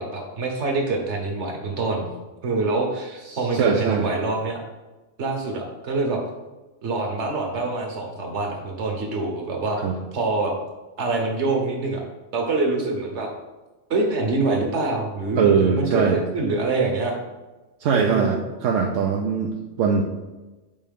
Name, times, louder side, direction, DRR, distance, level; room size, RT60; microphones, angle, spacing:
voice 1, 0.0-2.1 2.4-4.6 5.2-6.2 6.8-9.8 10.1-10.5 11.0-12.0 12.3-13.3 13.9-17.1 17.9-18.4, right 3 dB, 60° right, 1 dB, 1.4 m, -25 dB
voice 2, 3.3-4.1 9.8-10.0 15.4-16.2 17.8-20.0, right 6 dB, 75° right, 1 dB, 1.0 m, -21 dB
7.5 x 4.1 x 3.6 m, 1.1 s
omnidirectional pair, 1.3 m